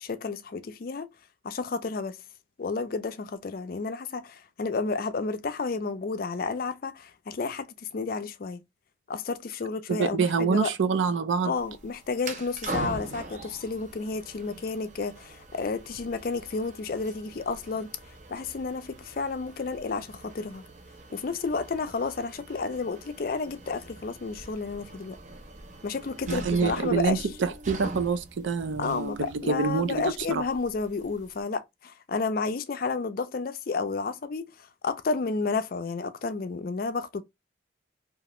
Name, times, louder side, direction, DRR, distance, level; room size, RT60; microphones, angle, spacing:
voice 1, 0.0-1.1 1.4-2.2 2.6-7.7 7.9-8.6 9.1-10.7 11.4-17.9 18.3-20.6 21.1-25.2 25.8-27.3 28.8-37.2, left 4 dB, 50° left, 0.4 m, -31 dB
voice 2, 9.9-11.5 26.3-30.4, right 5 dB, 80° right, 0.4 m, -26 dB
sound 1, 11.5-31.4, right 2 dB, 40° right, 0.6 m, -43 dB
2.9 x 2.4 x 3.0 m
head